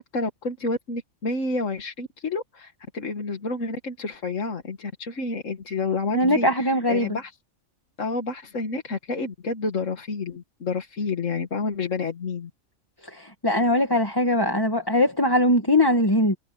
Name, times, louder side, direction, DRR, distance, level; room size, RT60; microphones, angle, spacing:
voice 1, 0.1-7.4 8.0-12.5, left 3 dB, 80° left, 2.1 m, -29 dB
voice 2, 6.1-7.1 13.1-16.4, left 1 dB, 20° left, 2.0 m, -21 dB
omnidirectional pair, 1.3 m